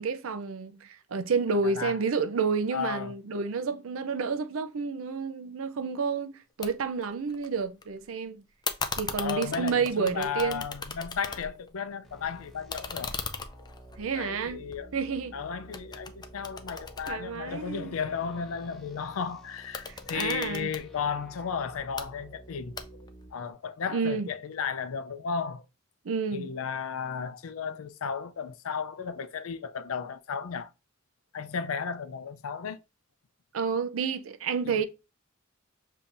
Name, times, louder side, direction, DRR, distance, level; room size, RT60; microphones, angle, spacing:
voice 1, 0.0-8.4 9.0-10.6 14.0-14.6 14.9-15.3 17.1-17.9 20.1-20.7 23.9-24.3 26.1-26.5 33.5-34.8, right 5 dB, 75° right, 0.5 m, -30 dB
voice 2, 1.6-2.0 2.7-3.1 9.2-13.1 14.1-14.9 15.3-25.6 26.3-30.7 31.3-32.8 34.6-34.8, left 6 dB, 80° left, 0.5 m, -34 dB
sound 1, 6.6-6.7 7.0-7.8 8.6-11.7 12.1-15.3 15.7-18.0 19.6-20.8 21.7-22.1 22.8-23.2, left 5 dB, 20° left, 0.4 m, -38 dB
sound 2, 12.0-23.3, right 1 dB, ahead, 0.9 m, -51 dB
6.9 x 2.7 x 2.5 m
head